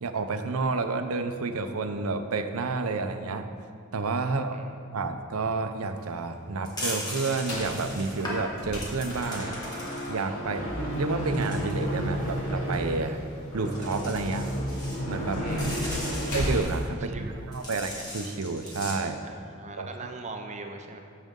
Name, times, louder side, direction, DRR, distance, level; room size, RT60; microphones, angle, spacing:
voice 1, 0.0-3.5 3.9-4.6 4.9-9.6 10.1-10.7 11.0-13.2 13.5-14.5 15.1-15.5 16.3-19.2 19.8-20.1, right 3 dB, 85° right, 8 dB, 0.6 m, -30 dB
voice 2, 4.2-4.8 15.4-16.1 17.1-17.4 19.2-21.0, right 3 dB, 35° right, 4 dB, 0.7 m, -41 dB
sound 1, 6.0-6.1 6.6-10.1 10.5-12.4 12.7-12.8 13.3-13.4 13.7-15.0 15.3-16.8 17.5-18.9, left 1 dB, 20° left, 1.9 m, -38 dB
sound 2, 7.4-7.8 8.3-16.6, equal, 80° left, 2.7 m, -32 dB
14.5 x 6.5 x 3.7 m, 2.3 s
head